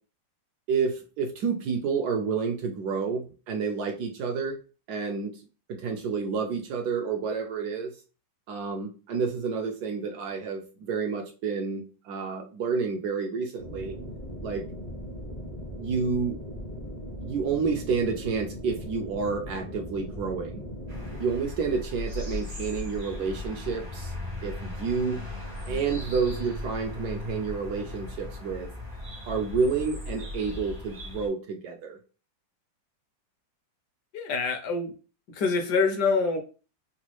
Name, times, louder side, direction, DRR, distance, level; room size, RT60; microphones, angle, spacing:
voice 1, 0.7-4.6 4.9-5.3 5.7-7.9 8.5-14.0 14.4-14.6 15.8-16.4 17.2-20.6 21.2-24.1 24.4-25.2 25.7-28.7 29.3-32.0, right 5 dB, 70° right, 3 dB, 1.0 m, -29 dB
sound 1, 13.6-21.2, equal, 45° left, 0.6 m, -39 dB
sound 2, 20.9-31.3, left 2 dB, 45° right, 0.5 m, -37 dB
voice 2, 34.1-34.9 35.3-36.4, left 4 dB, 70° left, 5 dB, 1.2 m, -25 dB
3.9 x 2.2 x 3.0 m, 0.34 s
omnidirectional pair, 2.0 m